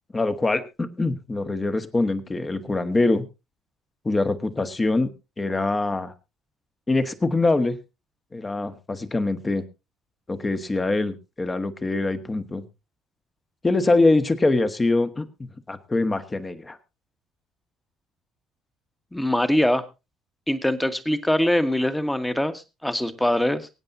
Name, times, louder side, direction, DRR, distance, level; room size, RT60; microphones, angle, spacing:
voice 1, 0.1-3.2 4.0-5.1 5.4-6.1 6.9-7.8 8.3-9.6 10.3-12.6 13.6-15.2 15.7-16.8, left 2 dB, 25° left, 9 dB, 1.5 m, -23 dB
voice 2, 19.1-19.8 20.5-23.7, left 1 dB, 10° left, 10 dB, 1.5 m, -23 dB
23.5 x 9.1 x 2.7 m, 0.26 s
hypercardioid pair, 55°, 0 cm